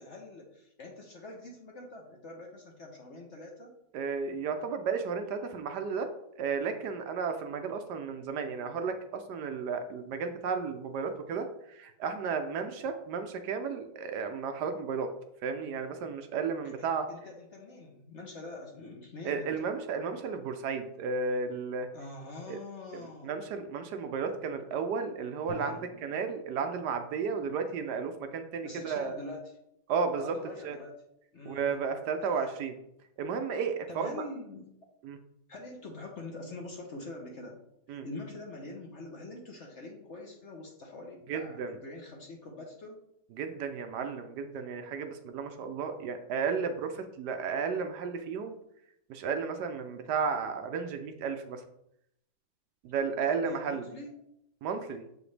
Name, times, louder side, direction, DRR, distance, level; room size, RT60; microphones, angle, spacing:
voice 1, 0.0-3.7 16.6-19.5 21.9-23.4 25.5-25.9 28.6-29.6 30.1-30.9 31.3-31.7 32.3-32.5 33.9-34.7 35.5-37.6 37.9-43.0 53.2-54.1, left 2 dB, 50° left, 0 dB, 1.0 m, -44 dB
voice 2, 3.9-6.1 6.4-15.1 15.4-17.1 19.2-21.9 22.5-22.6 22.9-29.2 29.9-30.3 30.6-30.8 31.4-32.8 33.2-34.2 35.0-35.2 37.9-38.1 41.3-41.7 43.4-48.5 49.1-51.6 52.8-53.9 54.6-55.0, right 5 dB, 70° right, 7 dB, 1.1 m, -33 dB
Drum, 25.5-27.4, left 1 dB, 70° left, 1.4 m, -49 dB
7.0 x 4.9 x 3.3 m, 0.79 s
omnidirectional pair, 1.9 m